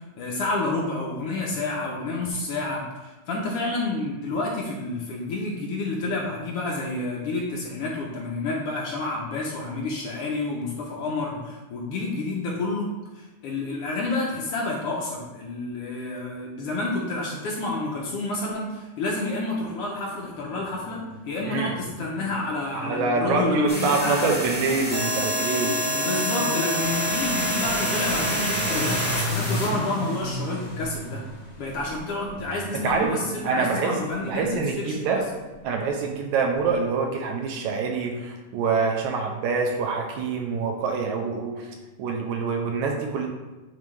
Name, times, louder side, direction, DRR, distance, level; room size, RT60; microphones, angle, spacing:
voice 1, 0.0-12.9 13.1-24.4 26.0-31.2 31.6-35.2, left 2 dB, 75° left, -3 dB, 1.3 m, -29 dB
sound 1, 20.2-36.9, equal, 55° left, 2.4 m, -36 dB
voice 2, 22.7-25.8 32.8-33.1 33.4-33.9 34.2-35.2 35.6-43.3, right 4 dB, 80° right, 2 dB, 1.9 m, -25 dB
sound 2, 23.7-29.7, equal, 25° right, 0.9 m, -27 dB
8.9 x 3.3 x 3.2 m, 1.1 s
omnidirectional pair, 3.5 m